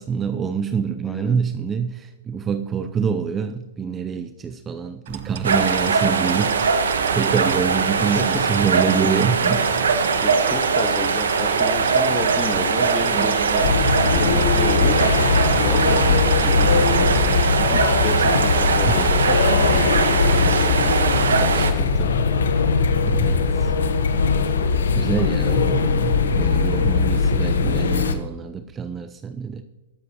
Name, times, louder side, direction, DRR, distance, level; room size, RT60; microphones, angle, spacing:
voice 1, 0.0-9.9 13.1-13.3 13.8-14.4 16.0-16.3 18.9-19.0 22.1-22.2 23.0-23.7 24.9-29.6, right 6 dB, 20° right, 10 dB, 0.6 m, -26 dB
voice 2, 1.0-1.4 8.1-8.4 9.6-9.7 10.2-13.7 14.1-15.1 15.6-17.2 17.6-20.9 21.4-22.1 25.2-25.5, left 3 dB, 10° left, 6 dB, 1.6 m, -32 dB
sound 1, 5.0-17.5, right 7 dB, 60° right, 0.9 m, -33 dB
sound 2, 5.4-21.7, right 5 dB, 80° right, 1.3 m, -21 dB
sound 3, 13.6-28.1, left 5 dB, 80° left, 1.1 m, -20 dB
20.5 x 7.8 x 3.0 m, 1.2 s
hypercardioid pair, 115°, 0 cm